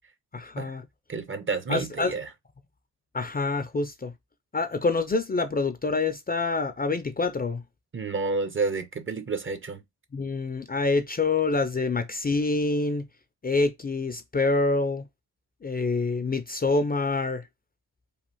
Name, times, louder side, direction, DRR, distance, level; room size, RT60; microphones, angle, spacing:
voice 1, 0.3-0.8 1.7-2.1 3.1-4.1 4.5-7.6 10.1-13.1 13.4-15.1 15.6-17.4, left 3 dB, 25° left, 0.5 m, -26 dB
voice 2, 1.1-2.3 7.9-9.8, right 4 dB, 30° right, 0.7 m, -30 dB
3.2 x 2.4 x 3.0 m
supercardioid pair, 50°, 38 cm